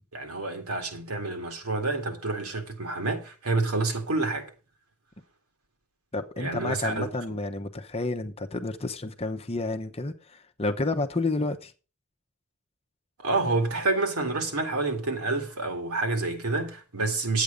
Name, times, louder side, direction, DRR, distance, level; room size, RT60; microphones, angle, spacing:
voice 1, 0.1-4.5 6.4-7.1 13.2-17.4, right 3 dB, 85° right, 2.2 m, -28 dB
voice 2, 6.1-11.7, left 2 dB, 25° left, 0.9 m, -30 dB
10.0 x 8.2 x 5.1 m
head